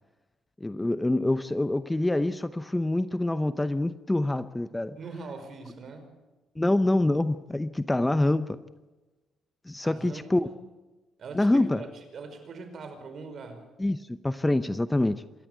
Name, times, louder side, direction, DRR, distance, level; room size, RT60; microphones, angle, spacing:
voice 1, 0.6-5.0 6.6-8.6 9.7-10.5 11.3-11.8 13.8-15.2, left 1 dB, 10° left, 12 dB, 0.8 m, -26 dB
voice 2, 5.0-6.1 9.8-10.5 11.2-11.9 12.1-13.6, right 4 dB, 55° right, 7 dB, 5.2 m, -41 dB
27.0 x 12.5 x 8.2 m, 1.1 s
cardioid pair, 90°, 0 cm